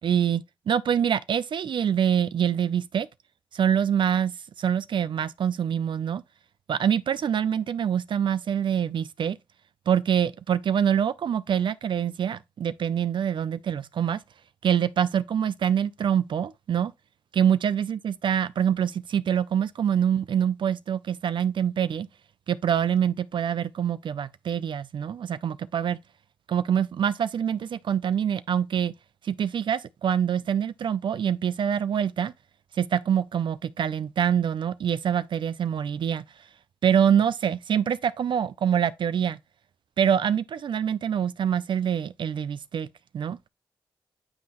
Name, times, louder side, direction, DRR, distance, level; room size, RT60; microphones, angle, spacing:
voice 1, 0.0-3.1 3.5-6.2 6.7-9.4 9.9-14.2 14.6-16.9 17.3-22.1 22.5-26.0 26.5-28.9 29.2-32.3 32.8-36.2 36.8-39.4 40.0-42.9 43.1-43.4, right 8 dB, 65° right, 0.3 m, -25 dB
9.6 x 3.6 x 2.9 m
cardioid pair, 65°, 9 cm